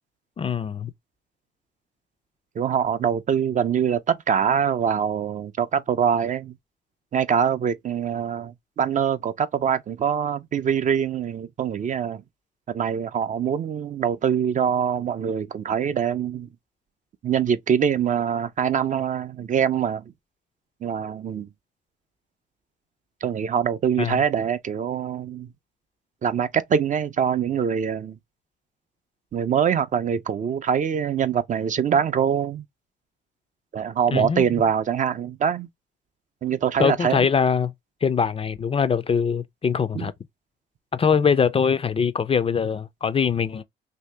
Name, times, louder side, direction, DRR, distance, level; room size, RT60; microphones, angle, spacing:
voice 1, 0.4-0.9 24.0-24.2 34.1-34.4 36.8-37.7 38.0-40.1 40.9-43.6, left 6 dB, 30° left, 0.3 m, -22 dB
voice 2, 2.6-6.5 7.1-12.2 12.7-16.5 17.2-20.0 20.8-21.5 23.2-25.5 26.2-28.2 29.3-32.6 33.7-35.7 36.4-37.3 39.9-40.1, right 8 dB, 40° right, 0.4 m, -24 dB
2.9 x 2.7 x 3.2 m
cardioid pair, 90°, 20 cm